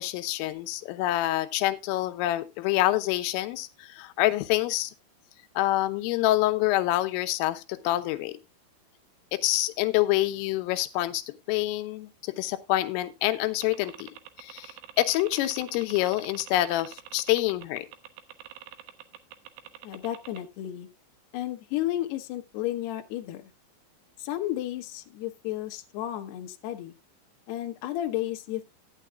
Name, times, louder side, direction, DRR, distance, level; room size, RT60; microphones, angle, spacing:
voice 1, 0.0-4.9 5.6-8.4 9.3-14.1 14.4-17.9, left 15 dB, 90° left, 3.5 m, -27 dB
sound 1, 13.6-20.4, right 12 dB, 75° right, 2.7 m, -45 dB
voice 2, 19.8-20.9 21.3-23.4 24.2-26.9 27.5-28.6, left 13 dB, 70° left, 2.9 m, -32 dB
15.0 x 10.0 x 2.3 m
omnidirectional pair, 5.7 m